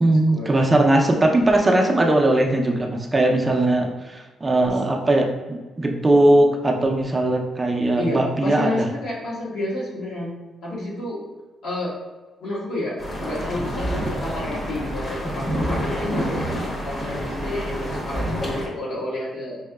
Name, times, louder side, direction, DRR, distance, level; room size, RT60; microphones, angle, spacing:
voice 1, 0.0-8.9, right 1 dB, 20° right, 1 dB, 0.5 m, -19 dB
voice 2, 8.0-10.3 10.6-11.2 11.6-11.9 12.4-16.4 16.8-19.6, left 1 dB, 75° left, -6 dB, 1.4 m, -30 dB
sound 1, 13.0-18.7, equal, 40° left, 1.0 m, -27 dB
5.4 x 2.8 x 2.3 m, 1.3 s
cardioid pair, 100°, 0 cm